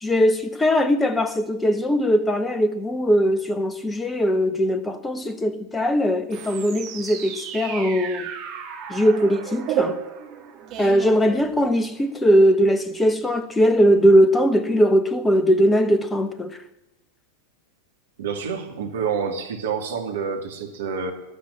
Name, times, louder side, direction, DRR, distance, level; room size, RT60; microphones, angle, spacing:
voice 1, 0.0-8.3 8.9-10.0 10.8-16.6, equal, 10° left, 1.3 m, -20 dB
sound 1, 6.3-12.0, right 8 dB, 35° right, 2.8 m, -32 dB
voice 2, 18.2-21.1, right 6 dB, 60° right, 2.5 m, -28 dB
13.0 x 12.0 x 8.9 m
figure-of-eight pair, 90°, 0 cm